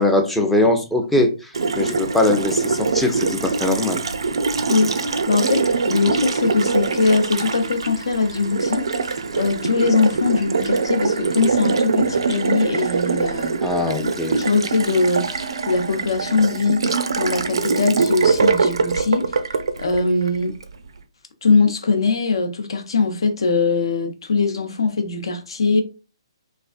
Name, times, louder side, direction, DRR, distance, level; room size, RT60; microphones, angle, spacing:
voice 1, 0.0-1.3 1.8-4.0 13.6-14.4, left 2 dB, 5° left, 0.5 m, -20 dB
Water tap faucet, 1.5-20.7, right 4 dB, 65° right, 0.4 m, -23 dB
voice 2, 4.7-13.6 14.0-14.1 14.4-19.3 19.8-20.5 21.4-25.8, left 4 dB, 65° left, 0.7 m, -21 dB
3.3 x 2.5 x 2.4 m
figure-of-eight pair, 135°, 3 cm